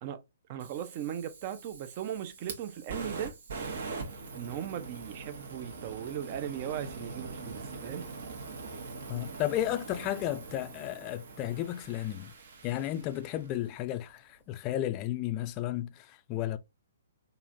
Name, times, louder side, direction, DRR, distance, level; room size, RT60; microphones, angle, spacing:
voice 1, 0.5-3.3 4.3-8.1, right 10 dB, 40° right, 0.5 m, -38 dB
Fire, 0.6-13.7, right 4 dB, 60° right, 0.9 m, -43 dB
voice 2, 9.1-12.3 12.6-16.6, left 13 dB, 30° left, 0.3 m, -33 dB
3.0 x 2.6 x 2.5 m
figure-of-eight pair, 125°, 0 cm